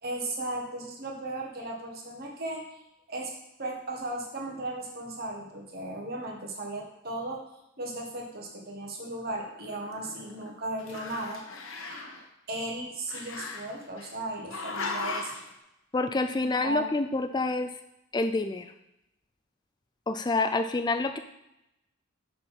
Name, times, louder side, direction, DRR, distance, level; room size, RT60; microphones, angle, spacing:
voice 1, 0.0-2.8 3.1-3.3 3.6-7.5 7.8-11.4 12.5-15.3 16.6-16.9, right 2 dB, 45° right, 0 dB, 1.4 m, -36 dB
Growling, 9.3-10.5 10.8-12.2 13.1-14.1 14.5-15.5, left 3 dB, 70° left, 1.0 m, -37 dB
voice 2, 15.9-17.7 18.1-18.7 20.1-21.2, left 3 dB, 20° left, 7 dB, 0.3 m, -27 dB
6.4 x 4.5 x 5.6 m, 0.87 s
head